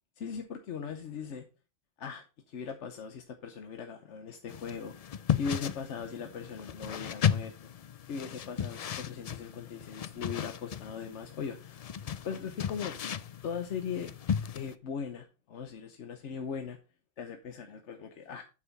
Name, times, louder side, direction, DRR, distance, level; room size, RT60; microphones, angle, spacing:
voice 1, 0.2-1.4 2.0-7.7 8.1-11.9 12.2-12.9 13.4-14.1 14.5-16.8 17.2-18.4, left 6 dB, 85° left, 1.2 m, -39 dB
sound 1, 4.5-14.7, left 8 dB, 55° left, 0.4 m, -35 dB
8.7 x 6.7 x 4.0 m
omnidirectional pair, 1.2 m